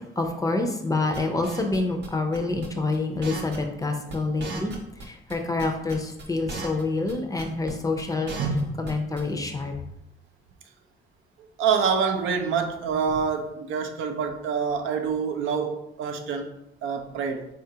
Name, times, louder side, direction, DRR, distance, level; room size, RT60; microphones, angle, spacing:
voice 1, 0.2-4.7 5.3-8.3 8.8-9.7, left 3 dB, 15° left, 0.4 m, -27 dB
sound 1, 1.1-2.1 2.3-2.7 2.9-3.0 3.2-3.8 4.1-4.2 4.4-5.3 5.6-6.8 7.1-7.2 7.4-7.7 8.0-8.9 9.2-9.3, right 3 dB, 60° right, 0.8 m, -36 dB
voice 2, 8.4-8.8 11.6-17.5, right 6 dB, 85° right, 0.4 m, -26 dB
3.8 x 2.4 x 2.7 m
cardioid pair, 90°, 20 cm